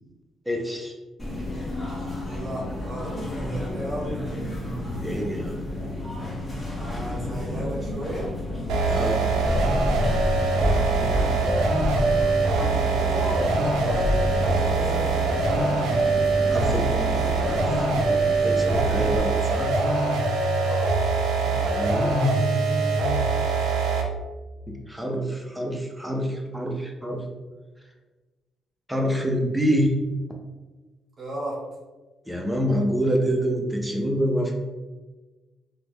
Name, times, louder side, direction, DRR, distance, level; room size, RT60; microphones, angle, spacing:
voice 1, 0.5-0.9 4.9-5.7 8.9-9.2 16.5-16.9 17.5-19.7 21.4-23.3 24.7-27.2 28.9-29.9 32.3-34.5, equal, 5° right, 1 dB, 0.6 m, -27 dB
sound 1, 1.2-19.2, left 1 dB, 15° left, 1.2 m, -30 dB
voice 2, 2.2-3.1 3.5-4.1 6.7-8.3 10.6-11.6 12.8-15.7 20.6-20.8 31.2-31.6, right 1 dB, 35° right, -5 dB, 0.9 m, -35 dB
sound 2, 8.7-24.2, right 3 dB, 90° right, 0.5 m, -23 dB
3.1 x 2.2 x 3.0 m, 1.2 s
cardioid pair, 90°, 0 cm